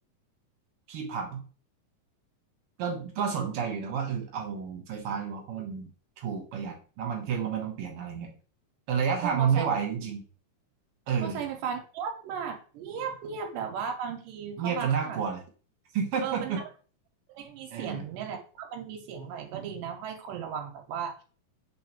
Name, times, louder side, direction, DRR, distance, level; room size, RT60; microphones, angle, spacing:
voice 1, 0.9-1.4 2.8-5.9 6.2-8.3 8.9-10.2 11.1-11.4 14.6-15.4 15.9-16.6 17.7-18.0, right 7 dB, 60° right, 1 dB, 1.6 m, -30 dB
voice 2, 9.2-9.7 11.2-15.2 16.2-16.6 17.3-21.2, right 7 dB, 85° right, 3 dB, 2.3 m, -36 dB
4.8 x 3.6 x 3.0 m, 0.39 s
omnidirectional pair, 3.9 m